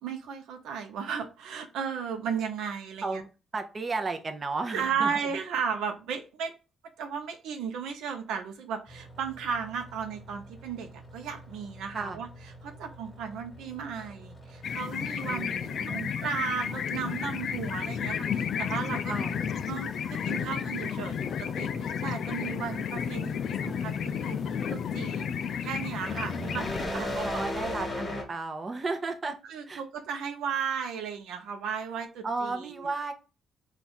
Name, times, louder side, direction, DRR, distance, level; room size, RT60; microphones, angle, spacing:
voice 1, 0.0-3.2 4.7-6.5 7.0-12.3 12.6-15.5 15.9-19.2 19.7-26.7 26.9-27.4 29.5-32.9, right 6 dB, 85° right, 6 dB, 0.6 m, -35 dB
voice 2, 3.0-5.1 11.9-12.2 15.3-16.2 19.1-19.4 26.4-29.4 29.7-29.8 32.2-33.1, right 3 dB, 30° right, 6 dB, 0.6 m, -34 dB
sound 1, 8.9-28.2, left 1 dB, 20° left, 1.3 m, -42 dB
sound 2, 14.6-26.9, left 7 dB, 60° left, 0.3 m, -32 dB
3.5 x 2.4 x 4.2 m, 0.32 s
cardioid pair, 90°, 0 cm